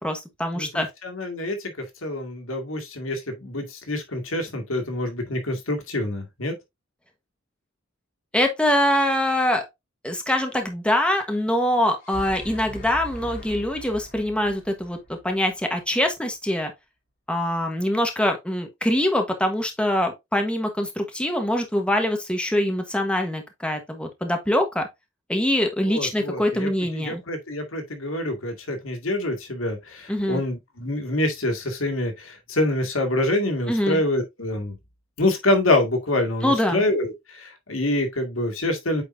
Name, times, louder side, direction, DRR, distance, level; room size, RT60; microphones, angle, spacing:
voice 1, 0.0-0.9 8.3-9.6 10.0-16.7 17.3-24.9 25.3-27.2 30.1-30.4 33.7-34.0 36.4-36.8, left 1 dB, 5° left, 1.2 m, -24 dB
voice 2, 0.5-6.6 25.9-34.8 35.2-39.0, left 1 dB, 85° left, 2.1 m, -26 dB
sound 1, 12.0-15.9, right 1 dB, 50° left, 3.2 m, -40 dB
8.7 x 4.4 x 2.6 m
head